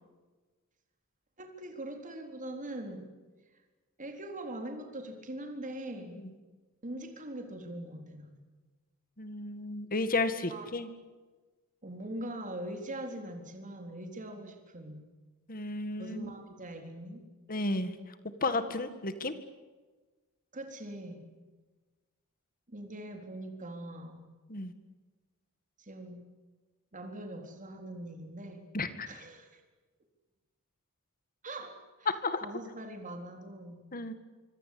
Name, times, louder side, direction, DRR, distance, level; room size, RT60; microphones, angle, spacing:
voice 1, 1.4-3.1 4.0-6.2 6.8-8.3 10.5-10.6 11.8-15.0 16.0-17.2 20.5-21.2 22.7-24.2 25.8-26.2 26.9-28.7 29.1-29.6 31.4-32.1 32.4-33.8, right 1 dB, 35° right, 4 dB, 4.0 m, -42 dB
voice 2, 9.2-10.9 15.5-16.4 17.5-18.1 18.4-19.3 24.5-24.7 28.7-29.1 32.1-32.4 33.9-34.1, left 3 dB, 40° left, 10 dB, 2.0 m, -33 dB
26.0 x 25.5 x 8.7 m, 1.3 s
head